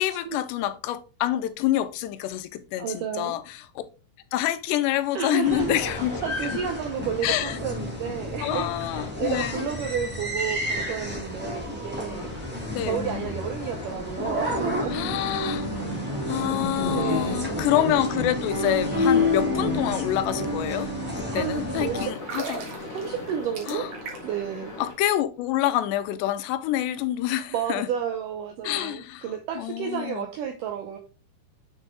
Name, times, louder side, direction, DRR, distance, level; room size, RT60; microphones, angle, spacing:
voice 1, 0.0-3.7 4.3-6.1 6.5-6.6 7.2-7.6 8.4-9.7 12.7-13.0 14.9-15.7 16.3-20.9 21.2-22.7 23.7-23.9 24.8-27.9 28.6-29.3 29.6-30.3, left 13 dB, 90° left, 2.9 m, -27 dB
voice 2, 2.8-3.4 5.2-5.8 6.2-12.3 12.8-15.0 16.9-17.7 21.3-22.1 22.9-23.9 24.2-24.8 27.5-31.0, right 8 dB, 80° right, 1.9 m, -31 dB
sound 1, 5.2-24.9, left 2 dB, 25° left, 2.3 m, -41 dB
sound 2, 5.4-22.0, left 1 dB, 5° right, 1.9 m, -30 dB
sound 3, 22.1-24.5 24.7-24.9, right 5 dB, 50° right, 2.1 m, -37 dB
8.0 x 6.3 x 2.2 m
omnidirectional pair, 4.7 m